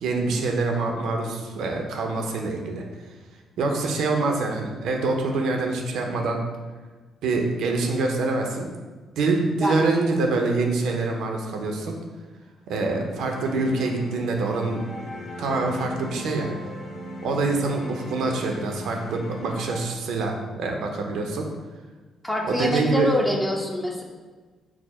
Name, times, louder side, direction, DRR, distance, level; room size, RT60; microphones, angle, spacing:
voice 1, 0.0-2.8 3.6-6.4 7.2-8.7 9.2-12.0 12.7-14.8 15.4-16.5 17.2-21.5 22.5-23.1, right 3 dB, 80° right, 2 dB, 0.6 m, -25 dB
voice 2, 9.6-9.9 10.2-10.3 22.2-24.0, left 1 dB, 5° left, 0 dB, 0.7 m, -25 dB
sound 1, 13.2-19.8, left 1 dB, 70° left, 1.3 m, -38 dB
4.7 x 2.1 x 4.2 m, 1.3 s
cardioid pair, 90°, 0 cm